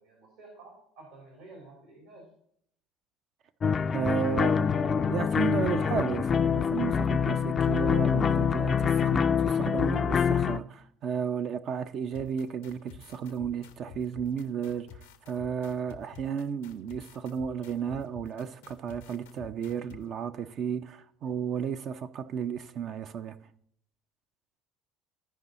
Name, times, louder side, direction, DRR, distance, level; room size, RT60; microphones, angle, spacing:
voice 1, 0.0-2.3, right 2 dB, 75° right, 3.1 m, -51 dB
sound 1, 3.6-10.6, left 7 dB, 35° left, 0.4 m, -25 dB
voice 2, 3.9-23.4, right 7 dB, 55° right, 0.5 m, -33 dB
sound 2, 12.1-20.0, left 8 dB, 80° left, 0.7 m, -49 dB
13.5 x 5.3 x 4.0 m
hypercardioid pair, 65°, 0 cm